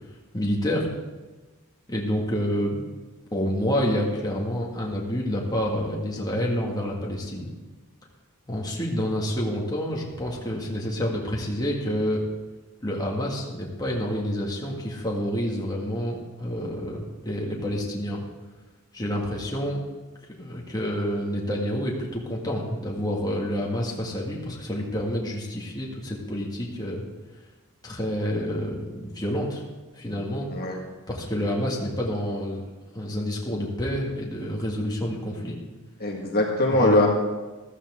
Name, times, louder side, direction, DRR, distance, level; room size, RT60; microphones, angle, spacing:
voice 1, 0.3-0.9 1.9-2.8 3.3-7.5 8.5-12.2 12.8-18.2 18.9-19.8 20.4-27.0 27.8-29.6 30.0-30.5 31.1-32.6 32.9-35.6 36.7-37.1, equal, 20° left, -2 dB, 1.9 m, -28 dB
voice 2, 36.0-37.1, left 1 dB, 45° left, 0 dB, 1.7 m, -21 dB
14.5 x 13.5 x 3.7 m, 1.2 s
head